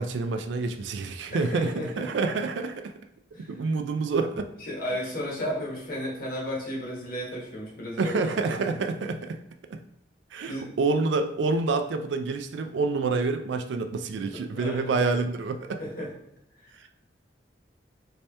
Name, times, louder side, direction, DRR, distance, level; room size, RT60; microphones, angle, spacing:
voice 1, 0.0-2.9 3.5-4.5 8.0-9.4 9.7-9.8 10.3-15.8 16.8-16.9, right 3 dB, 80° right, 7 dB, 0.4 m, -27 dB
voice 2, 1.3-2.1 3.3-3.5 4.6-8.8 10.5-10.7 14.5-15.0 15.8-16.1, equal, 50° left, -4 dB, 1.1 m, -34 dB
3.2 x 2.8 x 3.3 m, 0.75 s
head